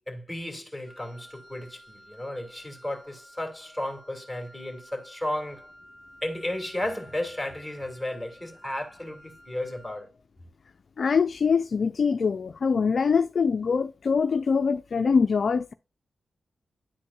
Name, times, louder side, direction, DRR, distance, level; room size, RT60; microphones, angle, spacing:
voice 1, 0.1-5.7 6.2-10.1, left 1 dB, 5° right, 2.7 m, -34 dB
Wind instrument woodwind instrument, 0.8-10.1, equal, 45° right, 3.1 m, -53 dB
voice 2, 11.0-15.7, left 5 dB, 55° left, 0.4 m, -23 dB
11.0 x 4.4 x 2.5 m
wide cardioid pair, 100°, 0 cm